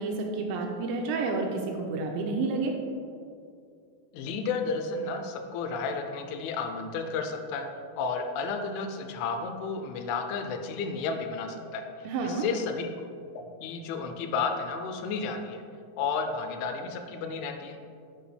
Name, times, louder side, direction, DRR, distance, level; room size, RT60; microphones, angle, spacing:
voice 1, 0.0-2.7 12.1-12.5, right 3 dB, 85° right, 2 dB, 2.6 m, -30 dB
voice 2, 4.1-7.7 8.0-11.9 12.2-12.9 13.3-15.6 16.0-17.8, left 4 dB, 85° left, 6 dB, 3.0 m, -32 dB
10.0 x 5.4 x 3.3 m, 2.3 s
omnidirectional pair, 5.5 m